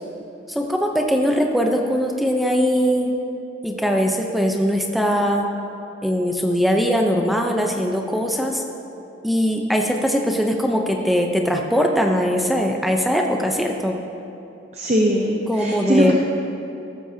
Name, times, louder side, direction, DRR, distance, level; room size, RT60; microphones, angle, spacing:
voice 1, 0.5-3.1 3.6-5.5 6.0-8.6 9.2-14.0 15.5-16.1, equal, ahead, 1 dB, 0.7 m, -21 dB
voice 2, 14.8-16.1, equal, 35° right, 0 dB, 0.8 m, -20 dB
14.5 x 13.0 x 2.8 m, 2.9 s
head